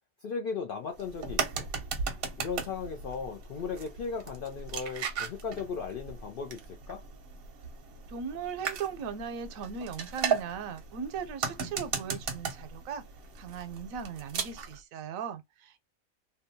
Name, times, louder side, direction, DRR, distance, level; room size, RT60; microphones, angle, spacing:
voice 1, 0.2-1.7 2.4-7.0, left 5 dB, 70° left, 0.5 m, -37 dB
sound 1, 0.9-14.8, right 6 dB, 60° right, 0.7 m, -37 dB
voice 2, 8.1-13.0 13.4-15.8, right 6 dB, 85° right, 1.0 m, -38 dB
2.7 x 2.2 x 2.6 m
omnidirectional pair, 1.4 m